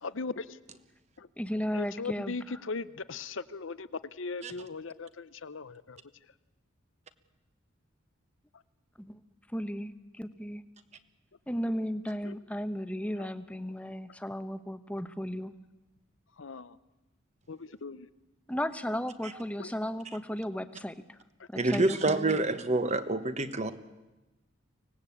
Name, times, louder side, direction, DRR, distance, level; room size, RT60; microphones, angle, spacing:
voice 1, 0.0-0.6 1.2-1.3 1.7-6.0 12.2-12.4 16.4-16.8 17.5-18.1 19.6-19.7 21.4-21.5, left 4 dB, 70° left, 0.8 m, -38 dB
voice 2, 1.4-2.3 9.0-9.2 9.5-10.6 11.5-15.5 18.5-21.2 21.5-22.4, equal, 5° left, 0.9 m, -35 dB
voice 3, 21.5-23.7, right 2 dB, 35° right, 1.2 m, -27 dB
24.5 x 18.5 x 8.5 m
head